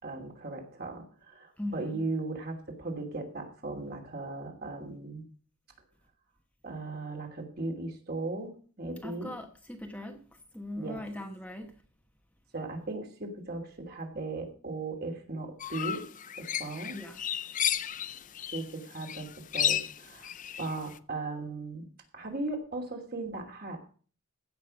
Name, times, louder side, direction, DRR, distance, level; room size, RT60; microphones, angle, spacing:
voice 1, 0.0-5.3 6.6-9.3 10.8-11.0 12.5-16.0 16.4-17.0 18.5-20.3 20.6-21.9 22.1-23.9, right 2 dB, 50° right, 2.7 m, -37 dB
voice 2, 1.6-2.1 9.0-10.3 10.5-11.8 16.9-17.2, left 1 dB, 5° left, 1.0 m, -40 dB
sound 1, 15.6-18.7 19.0-20.9, left 10 dB, 40° left, 0.5 m, -32 dB
15.5 x 5.9 x 6.3 m
head